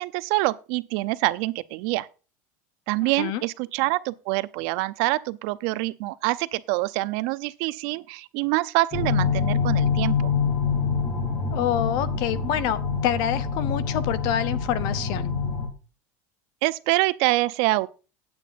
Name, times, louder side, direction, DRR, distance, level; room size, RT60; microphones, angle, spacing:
voice 1, 0.0-2.1 2.9-10.3 16.6-17.9, right 20 dB, 60° right, 0.6 m, -25 dB
voice 2, 3.0-3.4 11.5-15.3, left 10 dB, 50° left, 0.9 m, -27 dB
sound 1, 8.9-15.7, left 5 dB, 25° left, 2.4 m, -25 dB
9.3 x 8.9 x 4.1 m
cardioid pair, 165°, 8 cm